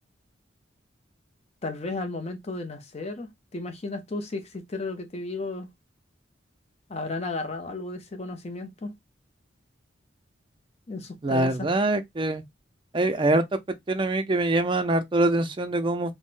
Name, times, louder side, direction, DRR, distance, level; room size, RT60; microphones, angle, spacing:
voice 1, 1.6-5.7 6.9-8.9 10.9-11.7, left 2 dB, 35° left, 0.6 m, -34 dB
voice 2, 11.2-12.4 12.9-13.4 13.9-16.1, right 2 dB, 25° right, 0.4 m, -24 dB
3.5 x 2.1 x 2.5 m
head